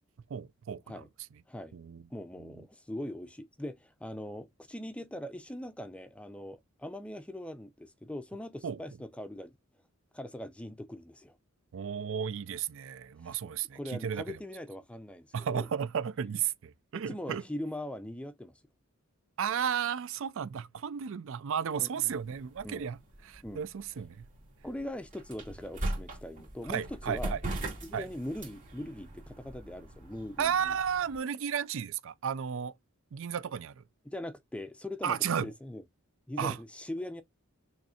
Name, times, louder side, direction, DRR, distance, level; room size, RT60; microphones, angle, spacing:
voice 1, 0.3-1.0 1.7-2.0 8.6-8.8 11.7-14.2 15.3-17.4 19.4-23.0 23.2-24.3 26.7-27.4 27.9-28.0 30.4-32.7 33.1-33.8 35.0-35.5 36.4-36.6, right 8 dB, 65° right, 0.4 m, -33 dB
voice 2, 2.1-9.5 10.1-11.4 13.2-13.4 13.7-15.7 17.1-18.5 21.8-22.1 22.6-22.9 23.4-23.6 24.6-27.4 27.8-30.8 34.1-35.2 35.4-35.8 36.3-37.2, left 1 dB, 5° left, 0.4 m, -41 dB
sound 1, 22.1-31.2, right 1 dB, 40° right, 2.4 m, -41 dB
6.2 x 3.1 x 2.7 m
head